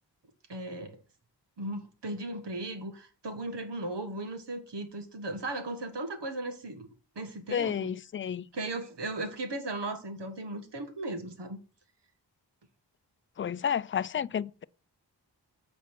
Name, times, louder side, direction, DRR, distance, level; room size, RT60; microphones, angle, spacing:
voice 1, 0.5-1.0 1.6-6.9 7.1-7.9 8.5-11.6, right 2 dB, 75° right, 1.6 m, -37 dB
voice 2, 7.5-8.4 13.4-14.6, left 8 dB, 30° left, 0.4 m, -31 dB
8.3 x 4.4 x 6.0 m
cardioid pair, 40°, 42 cm